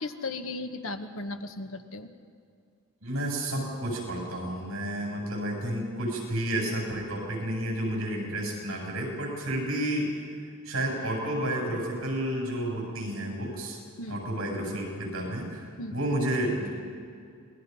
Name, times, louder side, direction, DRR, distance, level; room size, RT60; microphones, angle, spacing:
voice 1, 0.0-2.1 14.0-14.2 15.8-16.0, left 2 dB, 65° left, 7 dB, 1.3 m, -36 dB
voice 2, 3.0-10.1 10.6-13.8 14.1-16.7, right 1 dB, 70° right, -1 dB, 7.9 m, -31 dB
28.0 x 20.5 x 5.6 m, 2.3 s
head